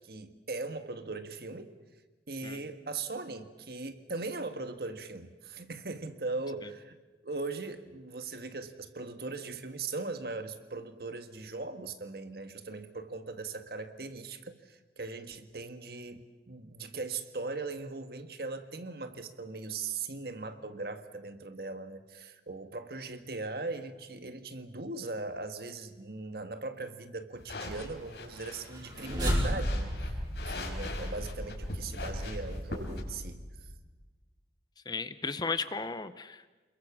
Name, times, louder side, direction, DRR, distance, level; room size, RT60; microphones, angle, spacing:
voice 1, 0.0-1.7 2.3-7.0 7.2-30.2 30.4-33.4, right 3 dB, 60° right, 8 dB, 1.6 m, -39 dB
sound 1, 27.4-33.0, left 2 dB, 75° left, 5.0 m, -43 dB
sound 2, 28.6-33.9, equal, 25° right, 5.0 m, -34 dB
voice 2, 34.9-36.5, left 4 dB, 25° left, 13 dB, 0.8 m, -35 dB
28.0 x 22.0 x 7.3 m, 1.2 s
head